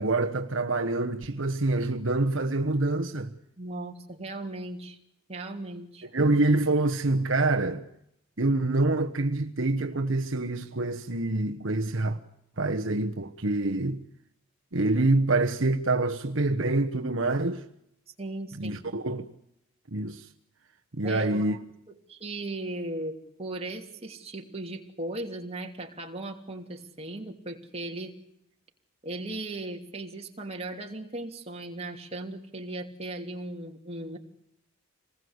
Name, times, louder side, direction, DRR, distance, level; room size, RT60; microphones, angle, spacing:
voice 1, 0.0-3.3 6.1-7.9 8.4-12.2 12.6-14.0 14.7-17.6 18.5-19.3 19.9-20.3 20.9-21.6, right 2 dB, 65° right, 1.2 m, -26 dB
voice 2, 3.6-5.0 5.3-6.1 18.2-18.8 21.0-21.6 21.9-28.1 29.0-34.2, right 2 dB, 30° right, 3.0 m, -37 dB
27.0 x 20.0 x 8.1 m
head